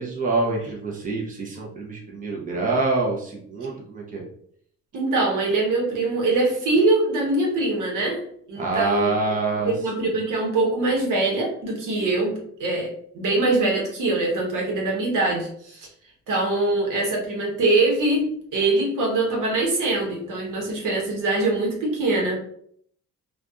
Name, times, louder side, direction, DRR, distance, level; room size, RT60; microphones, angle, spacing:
voice 1, 0.0-4.2 8.6-9.7 10.0-10.1, right 3 dB, 25° right, -2 dB, 0.7 m, -26 dB
voice 2, 4.9-9.1 9.6-15.9 16.3-22.3, right 2 dB, 75° right, -1 dB, 1.0 m, -23 dB
2.5 x 2.3 x 2.3 m, 0.64 s
cardioid pair, 85°, 32 cm